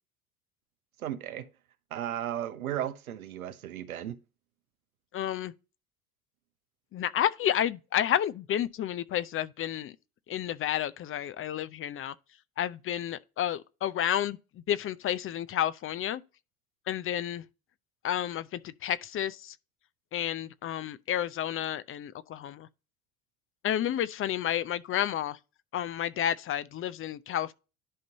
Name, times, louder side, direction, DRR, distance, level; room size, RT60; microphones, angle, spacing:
voice 1, 1.0-1.5 1.9-4.2, right 11 dB, 80° right, 0.9 m, -35 dB
voice 2, 5.1-5.5 6.9-9.9 10.3-12.1 12.6-14.4 14.7-16.2 16.9-17.4 18.0-19.5 20.1-22.7 23.6-25.4 25.7-27.5, left 10 dB, 30° left, 0.6 m, -30 dB
11.0 x 5.2 x 2.8 m
figure-of-eight pair, 65°, 42 cm